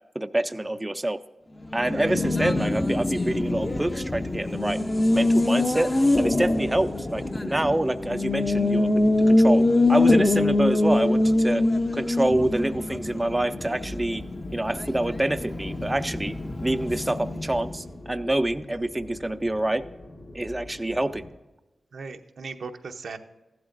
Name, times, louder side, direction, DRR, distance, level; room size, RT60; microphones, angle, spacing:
voice 1, 0.2-1.2 1.7-4.8 5.1-11.6 11.9-14.2 14.5-16.4 16.6-19.8 20.3-21.3, right 1 dB, 15° right, 9 dB, 0.4 m, -26 dB
Race car auto racing, 1.6-17.9, left 2 dB, 25° left, 0.6 m, -24 dB
sound 1, 4.5-21.3, left 1 dB, 65° left, 1.7 m, -44 dB
voice 2, 21.9-23.2, right 4 dB, 80° right, 6 dB, 0.7 m, -37 dB
15.0 x 12.0 x 2.5 m, 1.1 s
cardioid pair, 65°, 0 cm